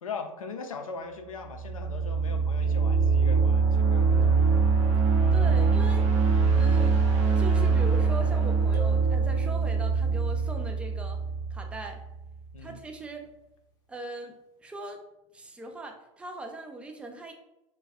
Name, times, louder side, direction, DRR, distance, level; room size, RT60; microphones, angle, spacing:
voice 1, 0.0-4.5 12.5-12.8, left 4 dB, 75° left, 5 dB, 0.4 m, -40 dB
sound 1, 1.5-12.3, right 4 dB, 60° right, 0.6 m, -23 dB
voice 2, 5.3-6.1 6.5-7.1 7.4-11.2 11.5-12.0 12.6-13.3 13.9-15.0 15.3-17.3, right 2 dB, 5° right, 3 dB, 0.3 m, -40 dB
sound 2, 8.7-10.2, right 3 dB, 25° left, 0.7 m, -42 dB
2.3 x 2.2 x 3.4 m, 0.92 s
figure-of-eight pair, 90°, 17 cm